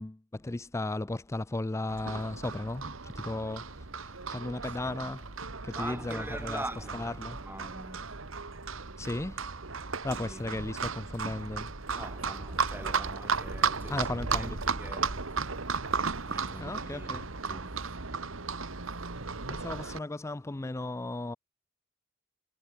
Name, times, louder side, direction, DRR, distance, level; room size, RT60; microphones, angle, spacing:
voice 1, 0.0-5.3 5.6-6.6 6.9-7.4 9.0-9.4 10.0-11.7 13.9-14.6 16.6-17.3 19.5-21.4, left 2 dB, 15° left, 0.4 m, -35 dB
Livestock farm animals working animals, 1.9-20.0, right 5 dB, 75° right, 1.8 m, -35 dB
voice 2, 5.7-8.1 10.3-10.6 11.9-15.5 16.3-17.9, right 1 dB, 10° right, 1.3 m, -43 dB
head